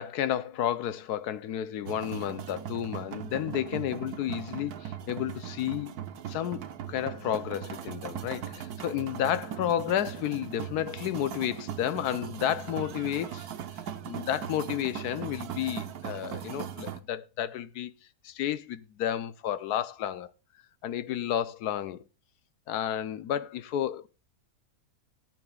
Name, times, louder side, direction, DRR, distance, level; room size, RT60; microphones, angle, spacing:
voice 1, 0.0-6.0 6.3-13.5 14.0-17.9 18.2-20.3 20.8-22.0 22.7-24.1, left 11 dB, 85° left, 1.2 m, -31 dB
sound 1, 1.8-17.0, right 9 dB, 80° right, 1.4 m, -39 dB
17.5 x 8.9 x 2.3 m
omnidirectional pair, 1.6 m